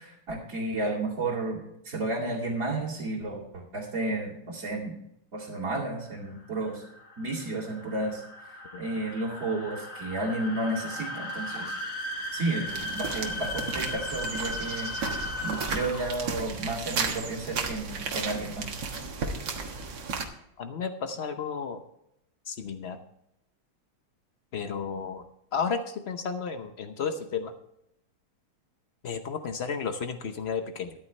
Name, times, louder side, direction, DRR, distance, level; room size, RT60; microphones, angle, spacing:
voice 1, 0.0-1.6 1.8-5.0 5.3-6.8 7.2-11.8 12.3-18.7, right 2 dB, 40° right, -8 dB, 2.9 m, -32 dB
sound 1, 5.6-16.3, left 1 dB, 40° left, 1.8 m, -37 dB
sound 2, 12.7-20.2, right 4 dB, 60° right, 2.1 m, -34 dB
voice 2, 20.6-21.8 22.5-23.0 24.5-25.3 25.5-27.5 29.0-30.9, left 6 dB, 85° left, 8 dB, 0.5 m, -32 dB
13.5 x 11.5 x 3.2 m, 0.80 s
omnidirectional pair, 2.3 m